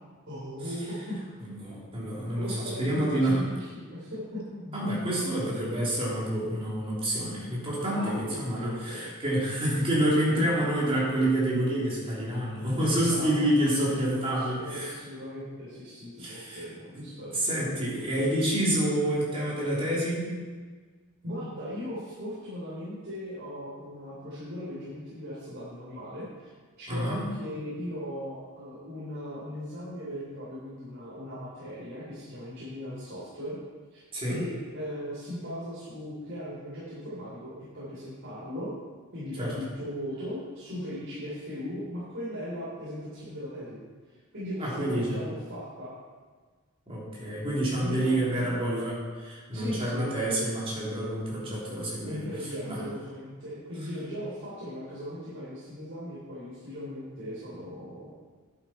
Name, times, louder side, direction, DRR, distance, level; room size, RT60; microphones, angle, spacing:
voice 1, 0.3-1.4 2.4-5.5 7.9-9.1 10.4-10.5 13.0-17.4 21.2-26.3 26.8-33.6 33.9-38.7 39.1-43.8 44.3-45.9 47.8-48.7 49.5-50.1 52.0-58.1, equal, 65° right, -10 dB, 3.5 m, -38 dB
voice 2, 1.4-3.4 4.7-14.9 16.2-16.6 16.9-17.0 17.3-20.4 26.9-27.3 34.1-34.4 39.4-39.5 44.6-45.2 46.9-52.2 52.7-52.8, right 1 dB, 25° right, -6 dB, 3.4 m, -28 dB
11.0 x 8.6 x 4.5 m, 1.5 s
head